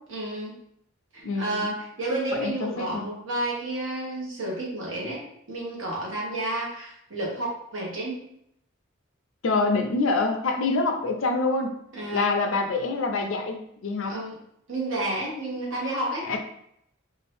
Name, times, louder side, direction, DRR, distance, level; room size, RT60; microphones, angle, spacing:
voice 1, 0.1-0.5 1.1-5.2 5.5-8.2 11.9-12.3 14.1-14.4 14.7-16.3, right 1 dB, 75° right, -3 dB, 1.1 m, -31 dB
voice 2, 1.2-1.7 2.3-3.0 9.4-11.7 12.1-14.2 16.2-16.4, left 3 dB, 75° left, 4 dB, 0.5 m, -26 dB
2.7 x 2.5 x 3.3 m, 0.74 s
head